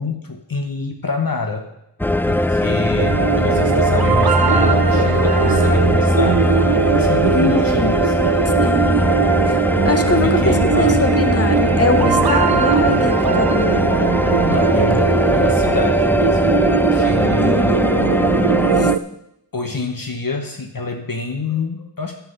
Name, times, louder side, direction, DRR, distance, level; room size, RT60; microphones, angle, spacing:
voice 1, 0.0-1.7 2.3-6.5 6.9-8.2 10.1-11.0 14.4-17.9 19.5-22.1, left 3 dB, 55° left, 4 dB, 1.0 m, -26 dB
sound 1, 2.0-19.0, left 1 dB, 5° left, 0.4 m, -19 dB
sound 2, 3.0-19.0, right 7 dB, 60° right, 0.6 m, -20 dB
voice 2, 7.3-8.0 8.6-9.1 9.5-14.0 14.6-14.9 17.4-17.9 18.7-18.9, left 3 dB, 35° left, 7 dB, 1.2 m, -23 dB
9.6 x 5.9 x 8.0 m, 0.84 s
wide cardioid pair, 40°, 42 cm